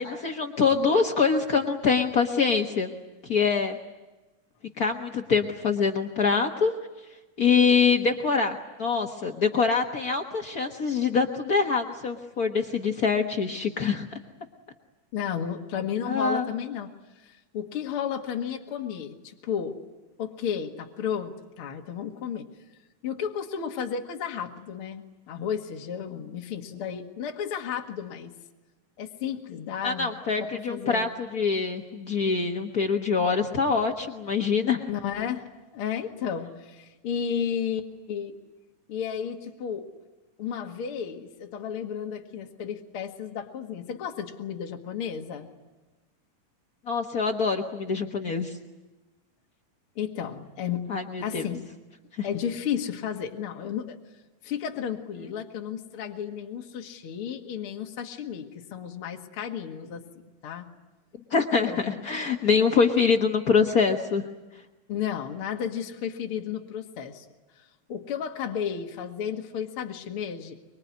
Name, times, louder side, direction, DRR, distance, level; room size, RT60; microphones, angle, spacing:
voice 1, 0.0-2.9 3.2-3.8 4.8-6.7 7.4-14.1 16.0-16.5 29.8-34.8 46.9-48.6 50.9-51.5 52.1-52.3 61.3-64.2, left 5 dB, 70° left, 3 dB, 0.8 m, -24 dB
voice 2, 15.1-16.9 17.2-19.8 20.2-22.5 23.0-28.3 29.0-30.1 30.4-31.1 34.9-35.5 35.7-38.4 38.9-39.9 40.4-45.5 50.0-50.8 51.2-51.6 52.2-54.0 54.4-60.0 60.4-60.7 61.6-62.1 64.9-67.3 67.9-70.5, left 8 dB, 45° left, 2 dB, 2.3 m, -33 dB
25.0 x 23.5 x 9.6 m, 1.1 s
omnidirectional pair, 3.8 m